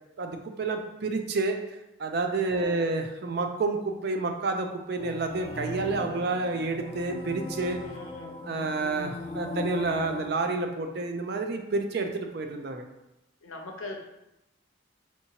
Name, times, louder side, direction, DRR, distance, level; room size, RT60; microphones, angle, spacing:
voice 1, 0.2-1.6 2.0-7.8 8.4-12.8, right 3 dB, 55° right, 5 dB, 0.4 m, -29 dB
voice 2, 2.4-2.9 7.8-8.4 13.4-14.0, left 2 dB, 90° left, 2 dB, 0.6 m, -41 dB
sound 1, 5.0-10.3, left 2 dB, 25° left, 0.4 m, -38 dB
4.5 x 2.9 x 2.8 m, 0.94 s
head